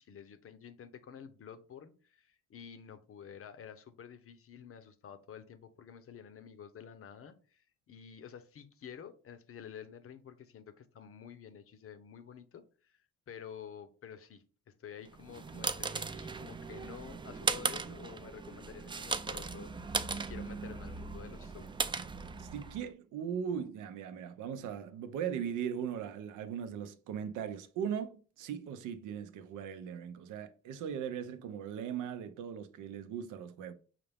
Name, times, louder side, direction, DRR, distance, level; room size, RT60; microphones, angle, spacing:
voice 1, 0.0-22.0, left 8 dB, 50° left, 0.6 m, -50 dB
sound 1, 15.1-22.9, right 4 dB, 15° right, 0.3 m, -37 dB
voice 2, 22.4-33.7, right 8 dB, 85° right, 0.6 m, -39 dB
5.7 x 2.5 x 3.4 m
cardioid pair, 90°, 30 cm